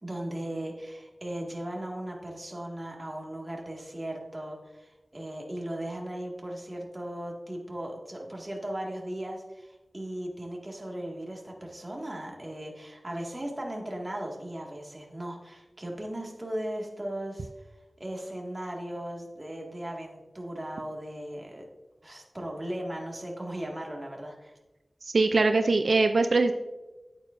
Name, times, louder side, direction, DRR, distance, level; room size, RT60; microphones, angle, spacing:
voice 1, 0.0-17.7 18.0-21.7 22.0-24.5, right 1 dB, 30° right, 0 dB, 1.9 m, -37 dB
voice 2, 25.0-26.5, right 3 dB, 80° right, 7 dB, 0.4 m, -22 dB
9.5 x 8.8 x 2.6 m, 1.1 s
wide cardioid pair, 65°, 0 cm